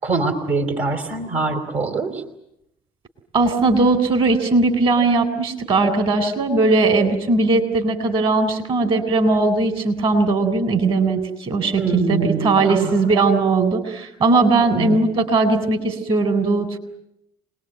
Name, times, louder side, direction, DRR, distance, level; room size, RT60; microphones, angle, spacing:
voice 1, 0.0-2.2 11.8-12.9 14.7-15.0, right 3 dB, 70° right, 6 dB, 3.8 m, -23 dB
voice 2, 3.3-16.8, right 3 dB, 50° right, 8 dB, 3.8 m, -19 dB
26.0 x 20.0 x 9.3 m, 0.80 s
hypercardioid pair, 65°, 12 cm